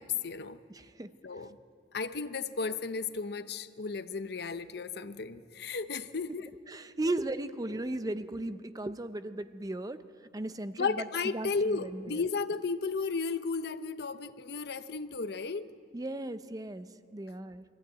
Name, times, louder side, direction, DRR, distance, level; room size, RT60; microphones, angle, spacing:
voice 1, 0.0-0.6 1.2-1.6 1.9-6.5 10.8-15.7, left 4 dB, 65° left, 12 dB, 0.7 m, -34 dB
voice 2, 0.7-1.1 6.7-10.0 10.3-11.0 11.3-12.2 15.9-17.6, right 2 dB, 20° right, 11 dB, 0.5 m, -36 dB
22.5 x 15.0 x 9.0 m, 2.4 s
head